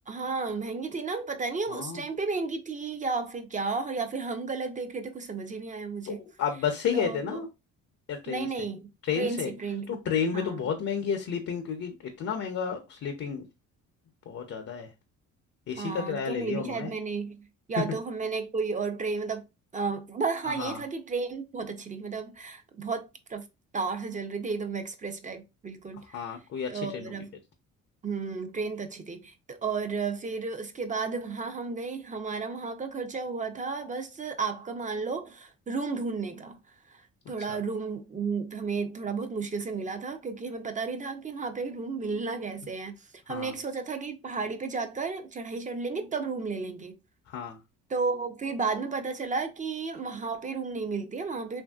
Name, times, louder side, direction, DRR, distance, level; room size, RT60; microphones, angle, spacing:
voice 1, 0.1-6.2 6.9-7.4 8.3-8.9 9.1-10.0 10.3-10.7 15.8-19.4 19.7-23.4 23.7-26.0 26.7-27.4 28.0-36.6 36.9-37.0 37.3-46.9 47.9-51.6, right 4 dB, 25° right, 0.5 m, -33 dB
voice 2, 1.7-2.0 6.0-7.5 8.1-8.5 9.1-9.5 9.9-13.4 14.3-14.9 15.7-16.9 20.6-20.8 26.1-27.1 37.5-37.6 43.3-43.5 47.3-47.6, left 7 dB, 55° left, 0.6 m, -31 dB
3.0 x 2.6 x 2.3 m
cardioid pair, 90°, 30 cm